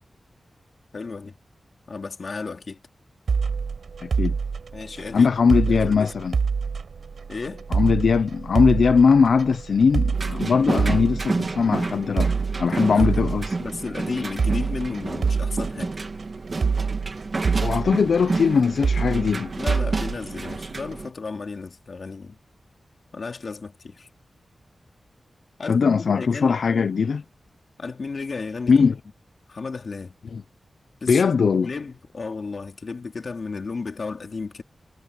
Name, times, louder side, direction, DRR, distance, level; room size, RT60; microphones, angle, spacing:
voice 1, 0.9-1.3 1.9-2.8 4.7-5.3 5.7-6.1 7.3-7.6 12.7-13.3 13.6-16.0 19.5-22.4 23.1-24.1 25.6-26.9 27.8-28.7 29.5-30.1 31.0-31.3 31.6-34.6, left 4 dB, 55° left, 2.7 m, -33 dB
sound 1, 3.3-21.0, right 5 dB, 70° right, 4.4 m, -27 dB
voice 2, 4.0-4.4 5.1-6.4 7.7-12.3 12.6-13.6 17.6-19.5 25.7-27.2 28.7-28.9 30.3-30.4 31.1-31.7, left 5 dB, 80° left, 0.6 m, -20 dB
sound 2, 10.1-21.1, right 3 dB, 45° right, 2.4 m, -30 dB
wide cardioid pair, 130°, 0 cm